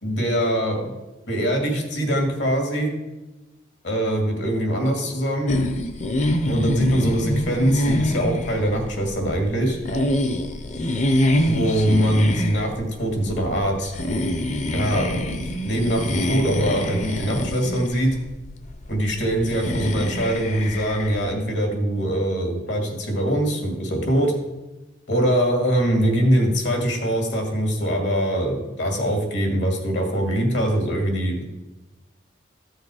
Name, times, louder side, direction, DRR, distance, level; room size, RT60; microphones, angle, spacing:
voice 1, 0.0-0.9 1.3-2.9 3.8-5.6 6.5-9.8 11.4-13.9 14.7-18.1 18.9-24.3 25.1-31.5, equal, 70° left, 2 dB, 2.3 m, -23 dB
sound 1, 5.5-21.3, left 1 dB, 35° left, 0.7 m, -26 dB
13.5 x 6.5 x 4.9 m, 1.1 s
head